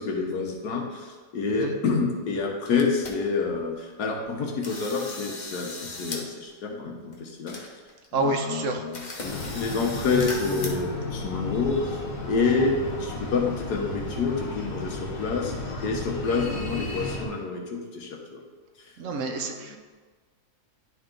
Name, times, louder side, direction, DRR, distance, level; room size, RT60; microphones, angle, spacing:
voice 1, 0.0-7.6 8.1-12.7 13.0-15.5 15.8-18.4 19.3-19.8, left 4 dB, 85° left, 1 dB, 1.6 m, -28 dB
sound 1, 2.7-3.1 3.6-3.7 4.1-4.3 4.6-6.2 6.5-6.6 7.1-7.2 7.5-8.1 8.4-8.5 8.9-10.7, left 3 dB, 35° left, 0.9 m, -38 dB
voice 2, 8.1-8.8 19.0-19.8, right 2 dB, 60° right, 4 dB, 1.0 m, -28 dB
Breathing, 9.2-17.2, left 3 dB, 65° left, 1.4 m, -34 dB
10.5 x 3.6 x 3.8 m, 1.4 s
omnidirectional pair, 1.7 m